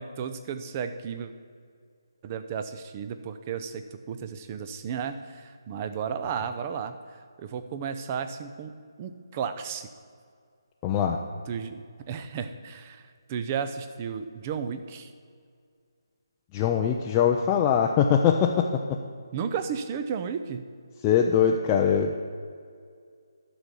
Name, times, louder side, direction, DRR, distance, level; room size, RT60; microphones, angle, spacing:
voice 1, 0.0-1.3 2.2-8.7 9.0-9.9 11.5-15.1 19.3-20.7, right 7 dB, 25° right, 9 dB, 0.6 m, -34 dB
voice 2, 10.8-11.2 16.5-18.7 21.0-22.1, left 8 dB, 20° left, 0 dB, 0.5 m, -22 dB
11.5 x 6.1 x 6.9 m, 2.2 s
figure-of-eight pair, 155°, 2 cm